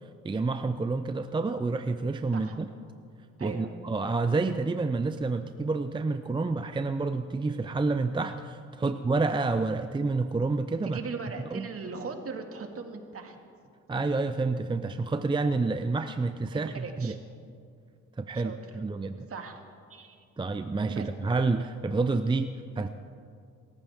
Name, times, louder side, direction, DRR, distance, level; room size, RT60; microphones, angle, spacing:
voice 1, 0.2-2.7 3.4-11.0 11.5-11.7 13.9-17.2 18.2-19.2 20.4-22.9, right 3 dB, 15° right, 9 dB, 0.6 m, -29 dB
voice 2, 3.4-3.7 8.8-8.9 10.8-13.4 16.5-17.2 18.3-18.8 19.3-20.2 20.9-21.1, right 4 dB, 50° right, 4 dB, 2.1 m, -39 dB
26.5 x 14.5 x 3.6 m, 2.3 s
cardioid pair, 90°, 30 cm